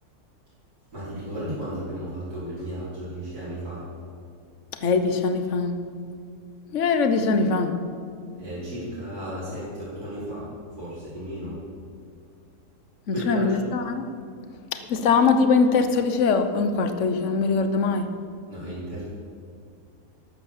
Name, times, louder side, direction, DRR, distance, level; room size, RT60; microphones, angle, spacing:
voice 1, 0.9-3.9 8.4-11.6 13.1-13.6 18.5-19.1, right 1 dB, 85° right, -12 dB, 5.7 m, -34 dB
voice 2, 4.8-5.8 6.7-7.8 13.1-14.0 14.7-18.1, left 4 dB, 55° left, 8 dB, 1.3 m, -22 dB
13.5 x 11.5 x 7.3 m, 2.2 s
omnidirectional pair, 1.6 m